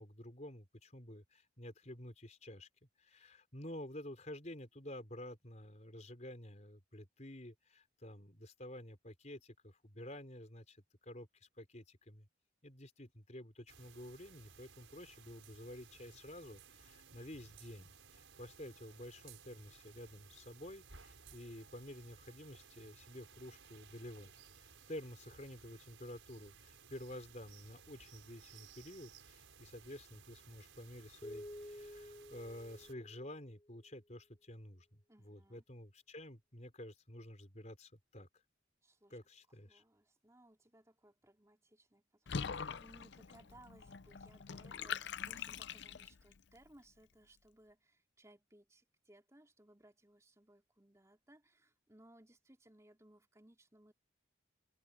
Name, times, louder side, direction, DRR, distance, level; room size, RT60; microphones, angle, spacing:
voice 1, 0.0-2.7 3.0-12.3 12.6-24.3 24.6-38.4 39.1-39.8, left 1 dB, 35° left, 4.7 m, -51 dB
sound 1, 13.7-32.9, right 6 dB, 85° right, 5.5 m, -60 dB
sound 2, 31.2-33.8, left 1 dB, 15° left, 0.6 m, -51 dB
voice 2, 35.1-35.6 38.8-39.2 39.6-53.9, right 1 dB, 15° right, 3.4 m, -64 dB
Water / Bathtub (filling or washing), 42.3-46.3, left 6 dB, 60° left, 0.6 m, -43 dB
head